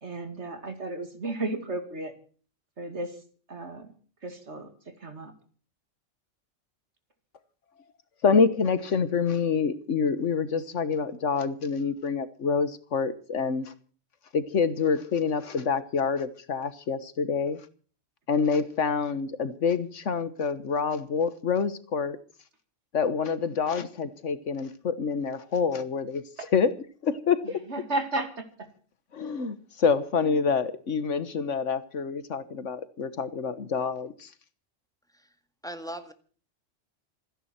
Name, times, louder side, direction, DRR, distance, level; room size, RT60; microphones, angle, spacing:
voice 1, 0.0-2.1 2.8-3.2 3.5-3.9 4.2-4.7 5.0-5.3 26.4-26.5 27.7-28.5 30.2-30.4, right 2 dB, 65° right, 2.6 m, -33 dB
voice 2, 8.2-13.7 14.3-17.6 18.3-22.2 22.9-26.2 26.5-26.7 27.0-27.4 29.1-34.3, left 5 dB, 80° left, 1.6 m, -27 dB
voice 3, 35.6-36.1, right 1 dB, 5° left, 1.8 m, -38 dB
27.5 x 10.0 x 4.4 m
omnidirectional pair, 1.2 m